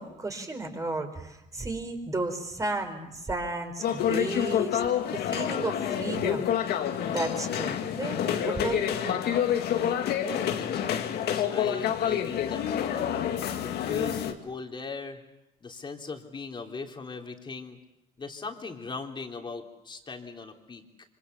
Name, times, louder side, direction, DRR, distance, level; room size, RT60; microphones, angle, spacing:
voice 1, 0.0-4.8 5.1-6.5 7.0-9.2, right 2 dB, 20° right, 5 dB, 4.7 m, -33 dB
sound 1, 3.8-14.3, left 9 dB, 70° left, 2.1 m, -28 dB
voice 2, 10.2-13.2 13.6-15.2 15.6-17.8 18.2-20.8, left 4 dB, 30° left, 2 dB, 3.5 m, -39 dB
26.5 x 25.0 x 7.0 m, 0.92 s
cardioid pair, 110°, 17 cm